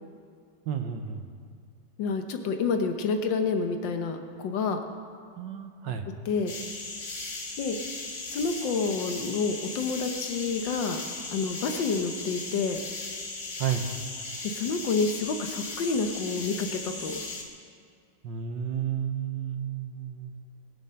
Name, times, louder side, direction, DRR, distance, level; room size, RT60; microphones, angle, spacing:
voice 1, 0.7-1.3 5.4-6.1 13.6-13.9 18.2-20.4, right 9 dB, 85° right, 6 dB, 1.7 m, -31 dB
voice 2, 2.0-4.8 6.3-6.5 7.6-7.8 8.3-11.0 11.3-12.8 14.4-17.2, left 4 dB, 85° left, 6 dB, 1.7 m, -28 dB
sound 1, 6.5-17.4, left 3 dB, 45° left, 1.8 m, -37 dB
21.0 x 7.5 x 5.7 m, 2.2 s
omnidirectional pair, 1.9 m